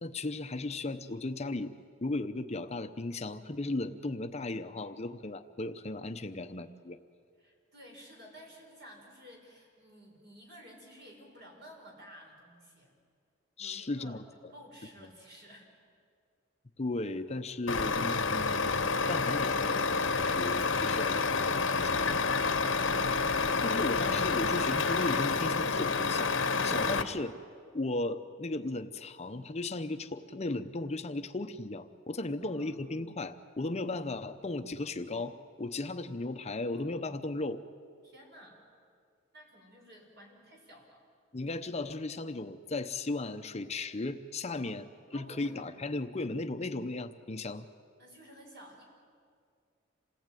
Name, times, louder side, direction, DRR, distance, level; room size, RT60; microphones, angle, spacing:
voice 1, 0.0-1.7 2.0-7.0 13.6-14.2 16.8-22.2 23.4-26.3 26.6-27.3 27.7-37.6 41.3-47.7, left 2 dB, 35° left, 9 dB, 0.8 m, -36 dB
voice 2, 7.4-12.9 13.6-15.7 32.4-32.9 38.0-38.6 39.3-41.0 44.6-44.8 45.1-45.9 48.0-48.8, equal, 55° right, 0 dB, 5.8 m, -53 dB
Truck, 17.7-27.0, left 4 dB, 70° left, 1.2 m, -29 dB
27.5 x 18.5 x 9.1 m, 2.2 s
head